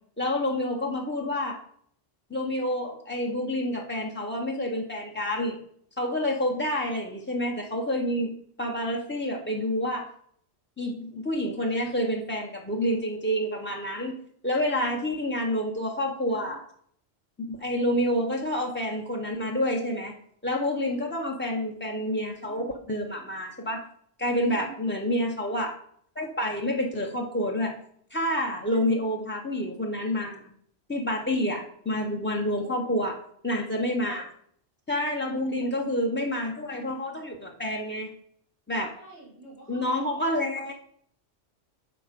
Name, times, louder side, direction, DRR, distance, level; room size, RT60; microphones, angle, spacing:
voice 1, 0.2-1.6 2.3-5.6 6.0-10.1 10.8-14.2 14.4-16.6 17.4-20.1 20.4-23.9 24.2-25.7 26.2-27.7 28.1-30.5 30.9-33.1 33.4-34.3 34.9-38.1 38.7-38.9 39.7-40.7, left 1 dB, 20° left, 0 dB, 0.3 m, -28 dB
voice 2, 24.5-24.8 28.6-28.8 32.6-33.0 34.9-35.3 35.7-35.8 39.0-40.3, right 3 dB, 50° left, -2 dB, 2.4 m, -47 dB
6.9 x 4.3 x 5.0 m, 0.64 s
omnidirectional pair, 1.3 m